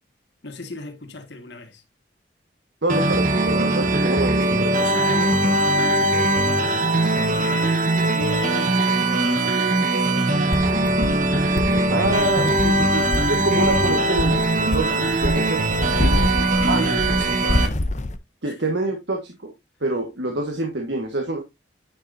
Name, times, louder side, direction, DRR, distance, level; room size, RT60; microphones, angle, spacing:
voice 1, 0.4-1.8 4.3-5.7 6.1-11.1 12.0-12.4 16.0-17.8 18.5-18.6, left 3 dB, 75° left, 1.9 m, -37 dB
voice 2, 2.8-4.9 11.9-16.2 16.6-16.9 18.4-19.5 19.8-21.4, right 2 dB, 75° right, 1.6 m, -26 dB
sound 1, 2.9-17.7, right 2 dB, 45° right, 1.1 m, -20 dB
sound 2, 10.5-18.2, left 1 dB, 40° left, 0.7 m, -27 dB
9.7 x 6.5 x 2.7 m
head